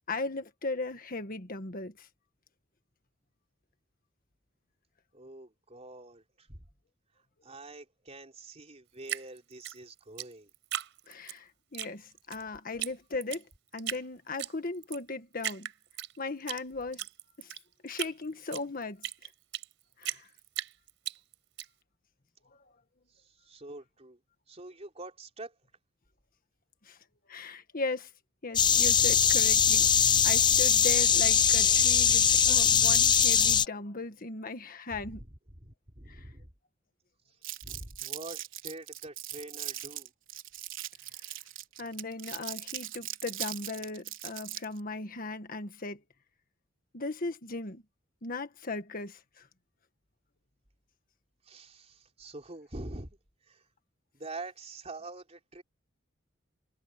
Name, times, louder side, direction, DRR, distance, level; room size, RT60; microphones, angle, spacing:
voice 1, 0.1-2.1 11.1-13.4 13.7-15.7 16.2-17.0 17.4-17.5 17.8-19.1 20.0-20.3 26.8-27.0 27.3-28.1 28.4-35.2 36.1-36.2 41.8-46.0 46.9-47.8 48.2-49.5, left 3 dB, 50° left, 1.6 m, -37 dB
voice 2, 5.1-6.6 7.4-10.5 23.1-24.2 24.5-25.6 34.9-36.5 37.3-37.4 37.6-40.1 51.4-53.2 53.4-53.6 54.1-55.6, right 2 dB, 35° right, 3.9 m, -45 dB
Drip, 9.1-11.4 11.7-12.4 12.8-12.9 13.2-14.0 14.4-15.0 15.4-16.6 16.9-19.7 20.0-21.7, right 11 dB, 70° right, 4.9 m, -37 dB
sound 1, 28.6-33.7, left 8 dB, 25° left, 0.5 m, -22 dB
Crumpling crinkling, 37.4-44.8, right 14 dB, 85° right, 4.4 m, -40 dB
head